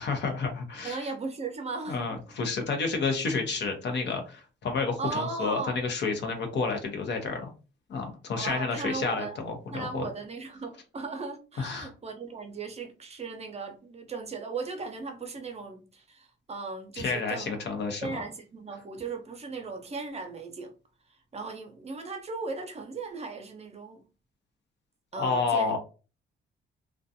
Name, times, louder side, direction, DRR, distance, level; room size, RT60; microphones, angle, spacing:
voice 1, 0.0-1.1 1.9-7.5 7.9-10.1 11.6-11.9 17.0-18.1 25.2-25.8, left 4 dB, 60° left, 0.8 m, -30 dB
voice 2, 0.8-2.2 5.0-5.8 8.4-9.4 9.7-17.6 18.0-20.7 21.1-24.0 25.1-25.8, right 4 dB, 30° right, 0.6 m, -37 dB
2.4 x 2.3 x 2.6 m
cardioid pair, 90°, 20 cm